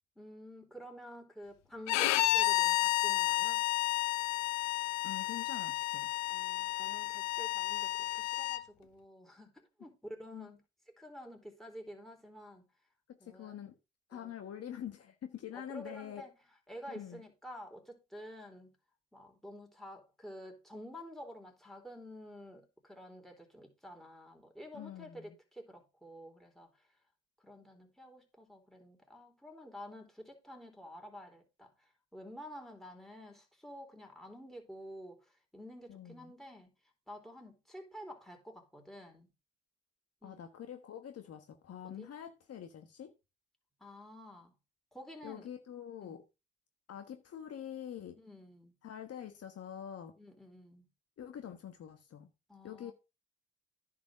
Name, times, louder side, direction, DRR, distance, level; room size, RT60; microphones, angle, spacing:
voice 1, 0.2-3.6 6.3-9.5 9.8-10.6 11.0-12.6 13.2-13.6 14.1-14.3 15.5-16.3 16.7-18.7 19.1-26.8 27.4-36.7 37.1-39.3 40.2-40.4 41.8-42.1 43.8-44.5 44.9-45.5 46.0-46.2 48.2-48.8 50.2-50.9 52.5-52.9, equal, ahead, 3.9 m, -50 dB
Bowed string instrument, 1.9-8.6, left 17 dB, 75° left, 0.7 m, -31 dB
voice 2, 5.0-6.1 10.3-10.5 13.1-13.7 14.1-16.2 16.9-17.2 24.7-25.4 35.9-36.3 40.2-43.1 45.2-46.2 46.9-48.2 48.8-50.1 51.2-52.3 52.6-52.9, left 9 dB, 55° left, 1.4 m, -45 dB
10.0 x 4.7 x 6.2 m
supercardioid pair, 65°, 29 cm